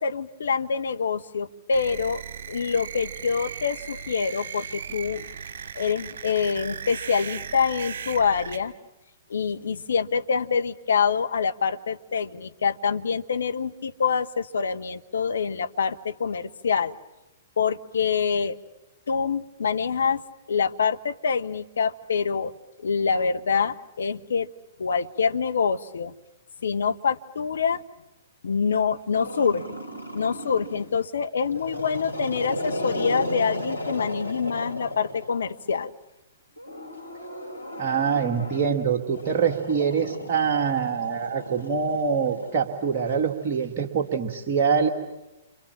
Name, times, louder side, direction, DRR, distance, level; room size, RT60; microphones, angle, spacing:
voice 1, 0.0-2.2 2.5-5.2 5.7-8.7 9.3-16.9 17.6-18.6 19.1-20.2 20.5-22.5 22.8-24.5 24.8-26.1 26.6-27.8 28.4-29.8 30.1-35.9, left 6 dB, 65° left, 9 dB, 1.2 m, -26 dB
sound 1, 1.7-8.6, right 6 dB, 55° right, 2.4 m, -37 dB
Growling, 29.1-30.9 31.4-35.6 36.6-43.1, left 1 dB, 85° left, 3.2 m, -35 dB
voice 2, 37.8-44.9, right 6 dB, 35° right, 1 dB, 2.1 m, -24 dB
29.5 x 26.5 x 7.4 m, 0.99 s
figure-of-eight pair, 115°, 0 cm